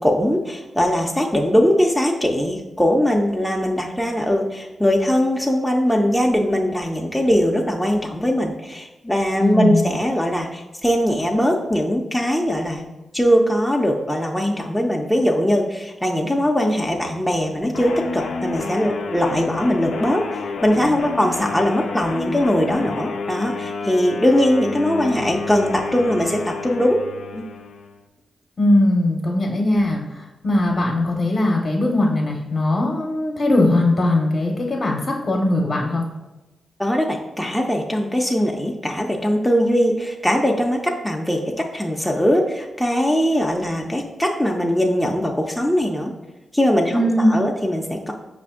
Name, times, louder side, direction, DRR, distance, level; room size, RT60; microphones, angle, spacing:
voice 1, 0.0-12.8 13.1-27.0 27.3-27.4 36.8-46.1 46.5-47.0 47.3-48.1, equal, 5° left, 0 dB, 0.5 m, -20 dB
voice 2, 9.4-9.8 28.6-36.0 46.9-47.4, left 1 dB, 45° left, -1 dB, 0.7 m, -20 dB
sound 1, 17.7-28.0, left 4 dB, 75° left, 0.3 m, -30 dB
5.1 x 2.5 x 3.6 m, 1.1 s
cardioid pair, 55°, 0 cm